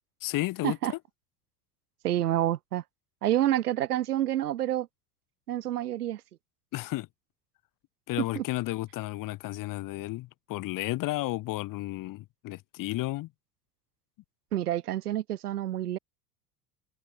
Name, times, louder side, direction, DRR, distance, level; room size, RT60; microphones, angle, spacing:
voice 1, 0.2-1.0 6.7-7.1 8.1-13.3, left 18 dB, 45° left, 1.7 m, -33 dB
voice 2, 2.0-2.8 3.2-4.9 5.5-6.2 8.3-8.4 14.5-16.0, right 12 dB, 75° right, 1.0 m, -28 dB
figure-of-eight pair, 70°, 46 cm